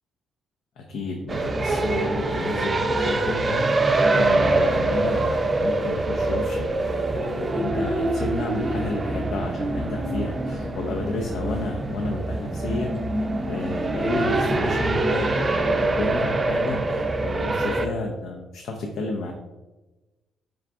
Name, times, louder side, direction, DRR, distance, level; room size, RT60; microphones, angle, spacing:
voice 1, 0.8-19.3, left 2 dB, 80° left, 2 dB, 0.5 m, -32 dB
sound 1, 1.3-17.9, right 2 dB, 30° right, 0.4 m, -24 dB
4.8 x 2.3 x 3.5 m, 1.1 s
cardioid pair, 90°, 0 cm